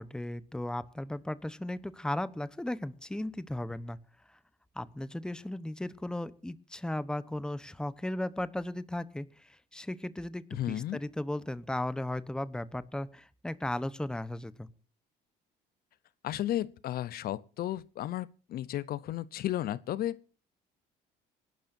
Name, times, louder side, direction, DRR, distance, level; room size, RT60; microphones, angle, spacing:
voice 1, 0.0-4.0 4.3-4.4 4.7-14.7, left 1 dB, 5° left, 0.9 m, -36 dB
voice 2, 10.5-11.0 16.2-20.3, left 13 dB, 65° left, 0.7 m, -34 dB
26.5 x 12.0 x 2.6 m
cardioid pair, 110°, 17 cm